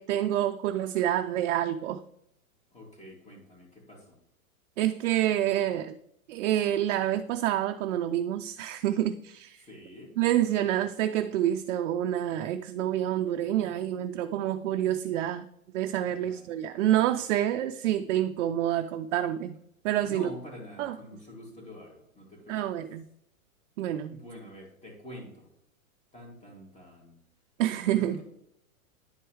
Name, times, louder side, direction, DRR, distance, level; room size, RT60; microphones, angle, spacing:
voice 1, 0.0-2.0 4.8-6.0 6.3-9.6 10.2-15.5 15.7-19.6 19.8-20.3 20.8-21.0 22.5-23.0 23.8-24.1 27.6-28.2, right 12 dB, 60° right, 0.5 m, -27 dB
voice 2, 2.7-4.2 9.6-10.1 16.0-16.6 20.0-22.8 24.1-25.5 26.1-27.2 27.9-28.2, equal, 15° left, 2.3 m, -46 dB
10.5 x 4.6 x 3.1 m
hypercardioid pair, 130°, 43 cm